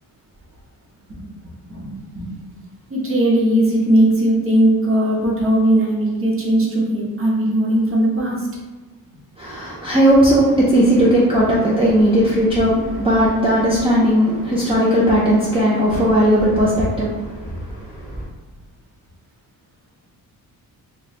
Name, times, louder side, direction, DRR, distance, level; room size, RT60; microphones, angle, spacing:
voice 1, 1.7-2.6 2.9-8.5, right 1 dB, 35° right, -3 dB, 0.9 m, -18 dB
voice 2, 9.4-18.2, equal, 15° right, -6 dB, 0.4 m, -17 dB
3.0 x 2.2 x 4.1 m, 1.2 s
wide cardioid pair, 160°, 36 cm